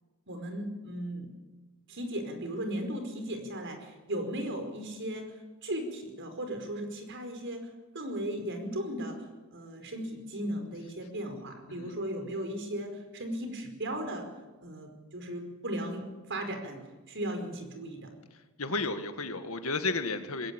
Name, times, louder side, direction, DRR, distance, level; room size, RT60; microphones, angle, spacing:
voice 1, 0.3-1.3 1.9-5.3 5.6-7.7 7.9-14.3 14.6-18.1, right 1 dB, 60° right, 5 dB, 5.0 m, -36 dB
voice 2, 18.6-20.5, left 3 dB, 70° left, 8 dB, 1.9 m, -32 dB
21.5 x 17.0 x 8.9 m, 1.2 s
head